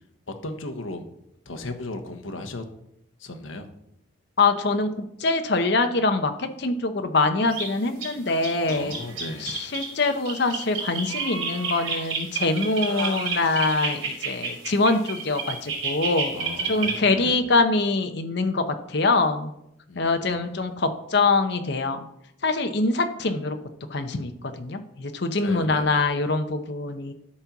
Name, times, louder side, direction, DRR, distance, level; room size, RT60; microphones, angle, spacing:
voice 1, 0.3-1.0 1.5-2.6 3.2-3.7 8.6-9.5 16.3-17.4 19.9-20.5 25.4-26.0, left 2 dB, 80° left, 7 dB, 1.2 m, -36 dB
voice 2, 4.4-4.9 5.2-9.0 9.4-16.3 16.7-18.6 18.9-19.5 20.0-22.0 22.4-23.6 23.9-27.1, left 3 dB, 55° left, 7 dB, 0.8 m, -24 dB
sound 1, 7.5-7.7 8.0-8.1 8.4-17.0, right 4 dB, 85° right, 3.8 m, -30 dB
12.5 x 4.4 x 5.9 m, 0.79 s
head